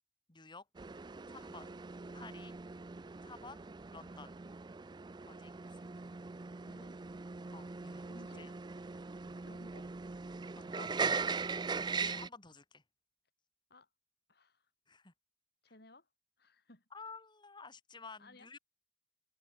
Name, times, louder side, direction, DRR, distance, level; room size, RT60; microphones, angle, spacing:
voice 1, 0.3-0.6 1.3-1.7 2.1-2.6 3.2-3.6 3.9-4.4 5.3-5.8 7.5-8.1 8.4-8.5 10.6-11.0 12.0-12.8 14.9-15.1 16.9-18.6, left 4 dB, 25° left, 2.6 m, -52 dB
sound 1, 0.8-12.3, right 4 dB, 25° right, 0.4 m, -40 dB
voice 2, 6.6-7.0 8.0-8.5 9.5-9.9 13.7-13.9 14.3-14.7 15.6-16.1 16.4-16.9 18.2-18.5, left 1 dB, 65° left, 5.2 m, -58 dB
head